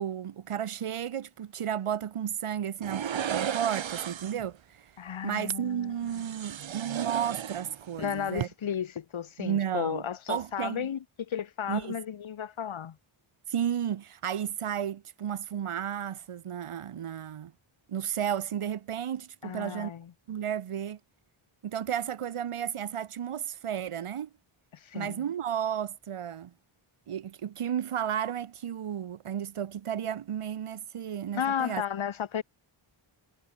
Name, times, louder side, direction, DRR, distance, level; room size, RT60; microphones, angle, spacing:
voice 1, 0.0-4.6 5.2-8.5 9.4-10.9 11.7-12.0 13.5-17.5 17.9-19.9 20.3-21.0 21.6-24.3 24.9-26.5 27.1-31.8, right 9 dB, 85° right, 2.1 m, -33 dB
sound 1, 2.8-4.5 6.1-8.0 8.3-8.5, right 9 dB, 65° right, 1.6 m, -34 dB
voice 2, 5.0-6.2 8.0-13.0 19.4-20.1 24.8-25.2 31.3-32.4, left 8 dB, 70° left, 1.9 m, -34 dB
wide cardioid pair, 125°, 50 cm